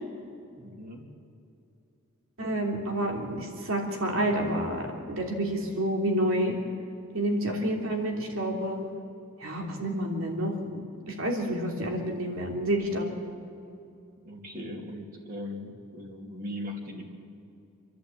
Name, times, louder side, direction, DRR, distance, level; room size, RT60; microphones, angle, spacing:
voice 1, 0.6-1.1 14.2-17.1, left 1 dB, 40° right, 0 dB, 2.9 m, -39 dB
voice 2, 2.4-6.6 7.1-8.8 9.4-10.8 11.1-13.1, right 1 dB, 70° right, 1 dB, 3.1 m, -29 dB
28.0 x 11.0 x 8.7 m, 2.6 s
head